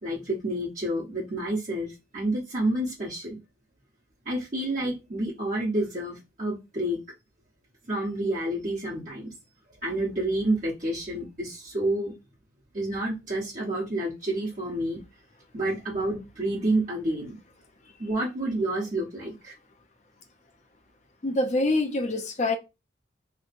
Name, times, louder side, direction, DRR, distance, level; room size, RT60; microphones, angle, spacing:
voice 1, 0.0-3.4 4.2-7.0 7.9-9.3 9.8-12.1 12.7-15.0 15.5-17.4 18.0-19.5, right 1 dB, 40° right, 1.1 m, -29 dB
voice 2, 21.2-22.6, left 2 dB, 40° left, 0.5 m, -25 dB
3.1 x 2.1 x 4.1 m
head